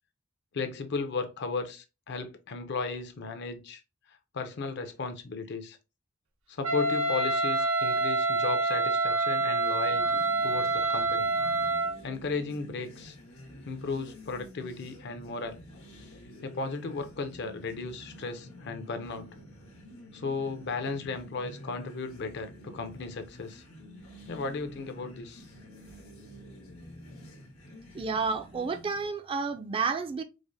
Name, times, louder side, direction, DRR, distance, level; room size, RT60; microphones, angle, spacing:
voice 1, 0.5-3.8 4.3-5.8 6.5-11.3 12.0-13.2 13.7-15.6 16.4-19.3 20.1-23.6 24.3-25.4, left 4 dB, 55° left, 0.5 m, -35 dB
Wind instrument woodwind instrument, 6.6-12.0, right 2 dB, 85° right, 0.6 m, -27 dB
sound 1, 9.6-29.1, equal, 85° left, 1.2 m, -49 dB
voice 2, 27.9-30.2, right 5 dB, 25° right, 0.3 m, -30 dB
4.8 x 2.1 x 2.6 m
head